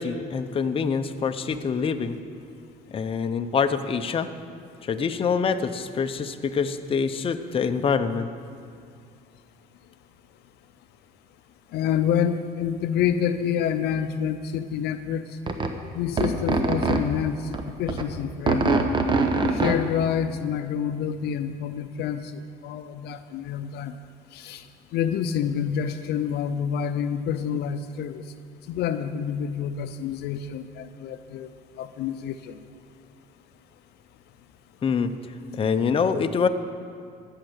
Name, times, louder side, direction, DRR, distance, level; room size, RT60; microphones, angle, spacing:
voice 1, 0.0-2.2 2.9-4.3 4.8-8.3 34.8-35.1 35.5-36.5, left 6 dB, 35° left, 7 dB, 0.7 m, -25 dB
voice 2, 11.7-15.2 15.9-18.8 19.5-24.0 24.3-24.6 24.9-28.2 28.7-31.5 31.8-32.5, left 8 dB, 75° left, 10 dB, 0.6 m, -28 dB
sound 1, 15.5-15.7 16.2-17.0 17.5-18.0 18.5-19.8, right 3 dB, 30° right, 1.0 m, -22 dB
13.5 x 6.6 x 8.0 m, 2.3 s
cardioid pair, 110°, 17 cm